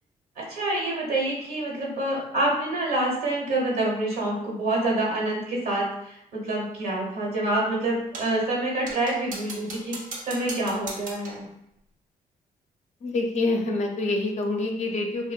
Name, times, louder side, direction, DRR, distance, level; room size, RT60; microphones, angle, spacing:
voice 1, 0.4-11.5, right 2 dB, 80° right, -3 dB, 1.0 m, -27 dB
sound 1, 8.1-8.4 8.9-11.5, right 3 dB, 55° right, 0.6 m, -38 dB
voice 2, 13.0-15.3, left 2 dB, 50° left, 2 dB, 0.5 m, -26 dB
2.6 x 2.0 x 2.3 m, 0.76 s
cardioid pair, 70°, 16 cm